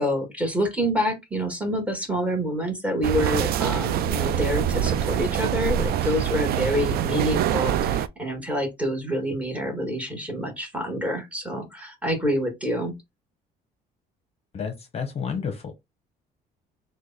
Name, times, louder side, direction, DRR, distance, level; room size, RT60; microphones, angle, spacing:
voice 1, 0.0-12.9, equal, 10° right, 1.4 m, -27 dB
sound 1, 3.0-8.1, right 9 dB, 65° right, 0.4 m, -24 dB
voice 2, 14.5-15.7, left 6 dB, 35° left, 0.7 m, -30 dB
3.2 x 2.2 x 3.9 m
cardioid pair, 110°, 17 cm